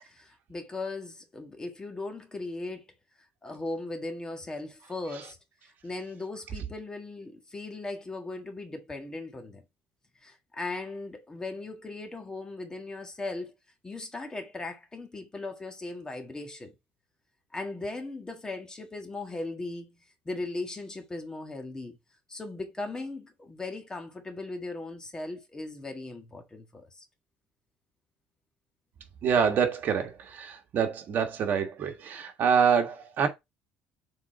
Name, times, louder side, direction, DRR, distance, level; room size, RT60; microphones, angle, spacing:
voice 1, 0.0-2.8 3.4-5.4 5.6-9.6 10.2-13.5 13.8-16.7 17.5-20.0 20.2-22.0 22.3-27.0, left 2 dB, 20° left, 1.5 m, -38 dB
voice 2, 29.2-33.3, right 7 dB, 55° right, 1.5 m, -26 dB
7.4 x 4.0 x 3.7 m
cardioid pair, 120°, 4 cm